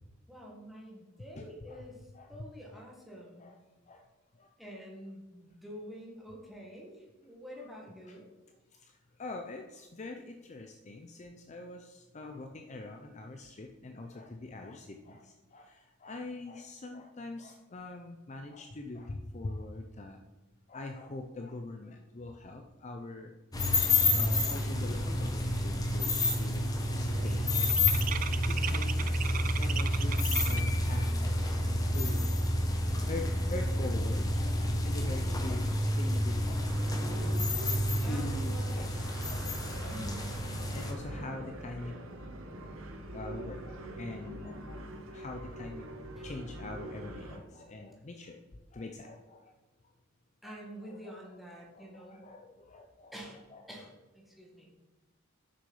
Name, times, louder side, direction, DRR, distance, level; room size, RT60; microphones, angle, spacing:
voice 1, 0.3-2.0 2.3-3.4 4.6-8.2 29.9-30.0 38.0-38.4 39.9-40.3 46.1-46.2 50.4-52.2 53.1-53.4 53.7-54.7, equal, ahead, -3 dB, 1.7 m, -47 dB
voice 2, 1.4-1.8 2.1-2.9 3.4-3.6 3.9-4.1 4.3-4.5 8.0-8.2 8.7-20.2 20.7-23.3 24.1-28.2 28.5-31.3 31.6-32.4 32.9-40.1 40.7-42.0 43.1-44.8 45.1-45.9 46.2-48.4 48.7-49.5 50.4-50.5 50.8-51.2 51.5-53.1 53.5-53.6, left 2 dB, 35° left, 4 dB, 0.5 m, -43 dB
sound 1, 23.5-40.9, left 1 dB, 15° left, 1.0 m, -29 dB
sound 2, 25.6-25.9 26.2-30.8, right 9 dB, 40° right, 0.3 m, -38 dB
sound 3, 36.5-47.4, right 1 dB, 70° right, 1.1 m, -44 dB
6.9 x 6.2 x 5.5 m, 1.2 s
head